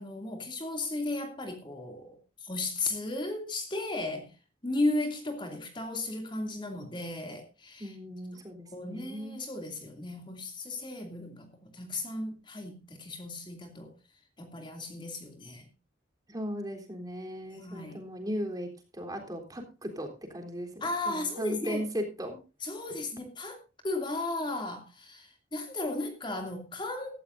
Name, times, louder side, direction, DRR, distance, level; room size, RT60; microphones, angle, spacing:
voice 1, 0.0-4.3 4.6-7.9 8.7-13.9 14.4-15.7 17.5-18.0 20.8-21.8 22.6-23.6 23.8-27.2, left 2 dB, 25° left, 2.7 m, -35 dB
voice 2, 7.8-9.4 16.3-20.7 21.1-22.4, equal, 20° right, 3.6 m, -37 dB
16.5 x 14.0 x 2.6 m
head